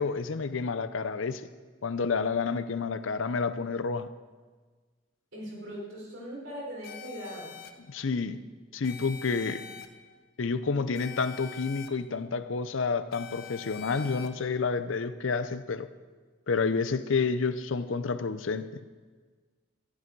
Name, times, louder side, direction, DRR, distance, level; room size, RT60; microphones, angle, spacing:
voice 1, 0.0-1.4 1.8-4.1 7.9-8.4 8.7-9.6 10.4-15.9 16.5-18.8, left 4 dB, 80° left, 0.6 m, -29 dB
voice 2, 5.3-7.6 9.3-9.6, equal, 85° right, 4.8 m, -40 dB
sound 1, 6.8-7.7 8.8-9.9 10.9-11.9 13.1-14.3, left 8 dB, 50° left, 0.8 m, -44 dB
13.0 x 11.5 x 4.7 m
head